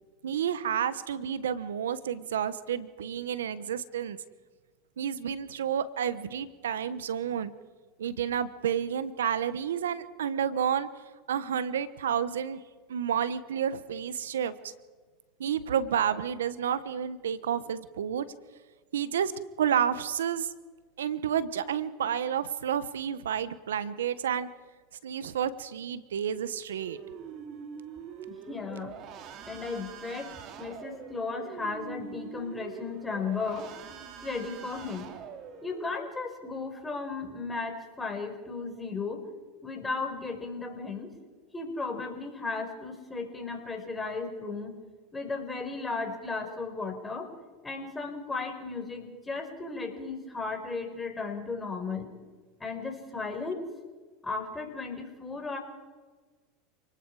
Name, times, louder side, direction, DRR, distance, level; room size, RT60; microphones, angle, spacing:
voice 1, 0.2-4.2 5.0-7.5 8.0-10.9 11.3-12.6 12.9-14.7 15.4-18.3 18.9-19.3 19.6-20.5 21.0-24.5 25.0-27.0, right 8 dB, 90° right, 15 dB, 1.1 m, -30 dB
sound 1, 26.8-36.0, right 7 dB, 50° right, 2.9 m, -44 dB
voice 2, 28.3-28.9 29.5-30.3 30.6-33.7 34.2-35.1 35.6-39.2 39.6-41.1 41.5-44.7 45.1-47.3 47.6-52.1 52.6-53.6 54.2-55.6, left 4 dB, 15° left, 3 dB, 5.2 m, -35 dB
29.5 x 19.5 x 4.9 m, 1.4 s
hypercardioid pair, 100°, 0 cm